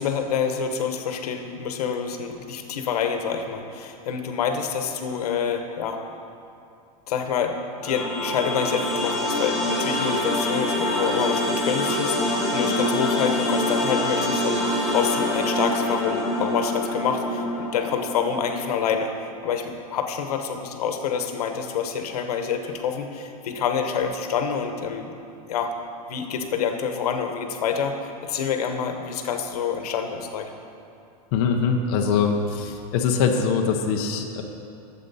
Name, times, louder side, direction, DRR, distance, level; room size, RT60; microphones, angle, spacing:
voice 1, 0.0-6.0 7.1-7.5 7.8-19.1 19.4-25.1 25.5-25.7 26.1-30.5, left 7 dB, 90° left, 6 dB, 1.1 m, -27 dB
sound 1, 7.8-18.9, left 1 dB, ahead, 1.4 m, -25 dB
voice 2, 31.3-34.4, left 6 dB, 40° left, 2 dB, 0.7 m, -23 dB
12.5 x 7.6 x 4.1 m, 2.6 s
supercardioid pair, 175°, 19 cm